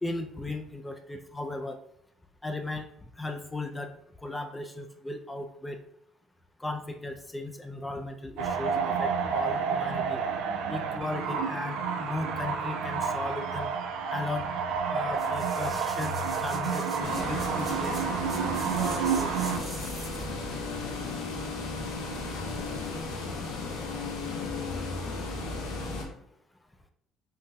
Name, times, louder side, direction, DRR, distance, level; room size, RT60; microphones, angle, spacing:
voice 1, 0.0-1.8 2.4-3.9 4.2-5.8 6.6-10.2 10.7-13.7 14.1-14.5 14.9-18.0 18.7-19.7, left 2 dB, 15° left, 5 dB, 0.3 m, -36 dB
sound 1, 8.4-19.6, right 6 dB, 80° right, 0.3 m, -30 dB
sound 2, 15.1-20.4 20.8-20.9, right 2 dB, 20° right, 1.3 m, -44 dB
sound 3, 17.0-26.0, left 3 dB, 85° left, 0.7 m, -35 dB
3.7 x 2.2 x 2.6 m, 0.72 s
supercardioid pair, 90°, 0 cm